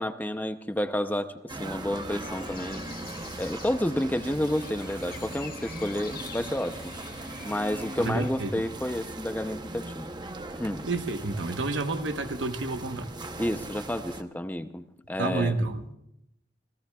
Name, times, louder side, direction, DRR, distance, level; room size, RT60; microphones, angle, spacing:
voice 1, 0.0-2.8 3.4-6.9 7.4-10.1 10.5-10.8 13.4-15.5, left 1 dB, 10° left, 9 dB, 0.6 m, -30 dB
sound 1, 1.5-14.2, right 2 dB, 25° right, 0.8 m, -40 dB
sound 2, 2.2-8.3, left 4 dB, 55° left, 1.3 m, -44 dB
voice 2, 8.0-8.5 10.9-13.1 15.2-15.8, right 2 dB, 85° right, 7 dB, 1.2 m, -29 dB
28.0 x 18.0 x 2.4 m, 0.80 s
head